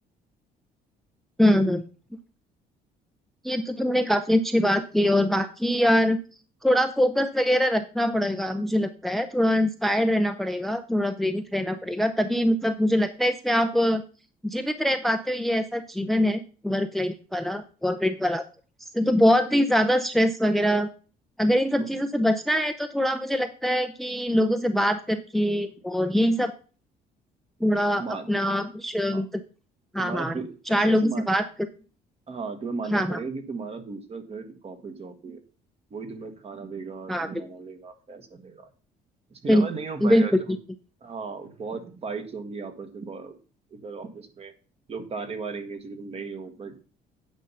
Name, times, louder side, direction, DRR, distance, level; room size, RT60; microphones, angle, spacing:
voice 1, 1.4-1.8 3.4-6.2 6.6-14.0 14.4-18.4 18.8-20.9 21.4-26.5 27.6-29.4 29.9-30.3 30.7-31.4 32.9-33.2 37.1-37.3 39.5-39.7 40.0-40.3, equal, ahead, 10 dB, 0.6 m, -23 dB
voice 2, 30.0-31.3 32.3-35.4 35.9-38.7 39.3-40.6 41.0-43.3 43.7-44.5 44.9-46.8, right 4 dB, 35° right, 8 dB, 1.6 m, -36 dB
9.1 x 5.5 x 5.6 m, 0.37 s
cardioid pair, 110°, 17 cm